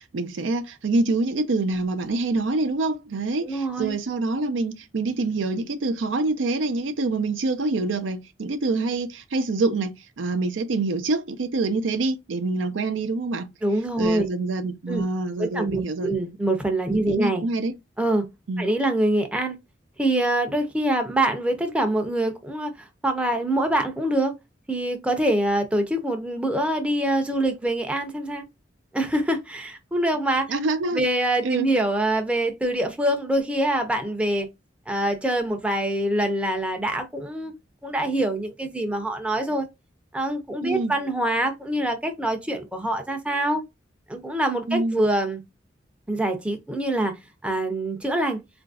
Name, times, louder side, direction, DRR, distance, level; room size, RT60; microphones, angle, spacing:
voice 1, 0.0-13.5 14.0-16.1 16.9-17.7 18.5-18.7 30.5-31.0 31.4-31.7 40.6-41.0 44.7-45.0, right 3 dB, 85° right, 0.5 m, -26 dB
voice 2, 3.4-4.0 13.6-14.3 14.9-15.0 15.4-17.4 18.0-18.3 18.6-19.6 20.0-24.3 24.7-28.4 28.9-30.5 30.9-34.5 34.9-37.5 37.8-39.7 40.1-43.6 44.1-45.4 46.1-48.4, right 1 dB, 5° right, 0.5 m, -25 dB
3.9 x 2.5 x 2.3 m
head